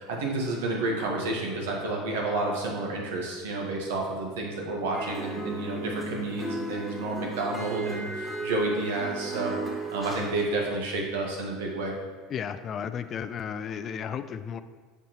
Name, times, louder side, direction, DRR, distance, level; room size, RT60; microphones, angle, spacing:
voice 1, 0.0-9.5 9.9-11.9, right 2 dB, 85° right, -1 dB, 1.3 m, -30 dB
sound 1, 4.9-10.4, right 3 dB, 5° right, 1.7 m, -35 dB
voice 2, 12.3-14.6, left 7 dB, 40° left, 12 dB, 0.3 m, -34 dB
7.1 x 5.2 x 3.0 m, 1.5 s
supercardioid pair, 105°, 0 cm